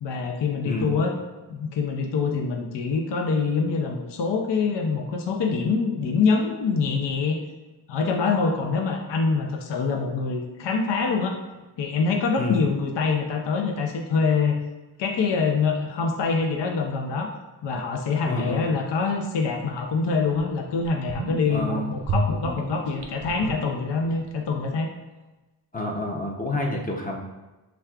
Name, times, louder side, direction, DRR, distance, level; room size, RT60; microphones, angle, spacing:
voice 1, 0.0-1.2 1.5-7.4 7.9-11.4 11.8-14.6 15.0-17.3 17.6-24.9, left 4 dB, 70° left, 2 dB, 0.6 m, -25 dB
voice 2, 0.6-1.0 12.4-12.6 18.2-18.6 21.5-21.9 25.7-27.2, left 1 dB, 20° left, -1 dB, 0.6 m, -28 dB
sound 1, 19.8-19.9 20.3-20.4 20.8-21.6 22.0-24.3 24.5-24.6, right 1 dB, 60° right, 0.6 m, -30 dB
6.0 x 3.4 x 2.4 m, 1.1 s
wide cardioid pair, 105°, 45 cm